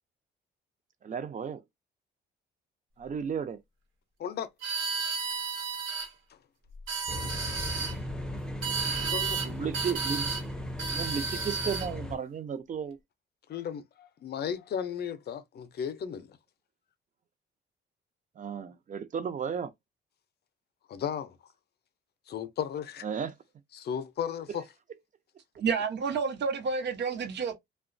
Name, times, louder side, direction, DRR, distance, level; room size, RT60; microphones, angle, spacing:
voice 1, 1.0-1.6 3.0-3.6 9.4-10.3 10.9-13.0 18.4-19.7 23.0-23.3, right 7 dB, 40° right, 0.6 m, -34 dB
voice 2, 4.2-4.5 9.0-9.4 13.5-16.4 20.9-21.4 22.3-23.1 23.7-24.7, left 8 dB, 55° left, 0.5 m, -35 dB
sound 1, 4.6-6.1 6.7-7.9 8.6-9.5 9.7-10.4 10.8-11.9, right 5 dB, 85° right, 1.1 m, -32 dB
sound 2, 7.1-12.2, left 1 dB, 5° left, 0.5 m, -37 dB
voice 3, 25.6-27.5, right 5 dB, 60° right, 0.9 m, -29 dB
2.8 x 2.2 x 2.5 m
cardioid pair, 90°, 20 cm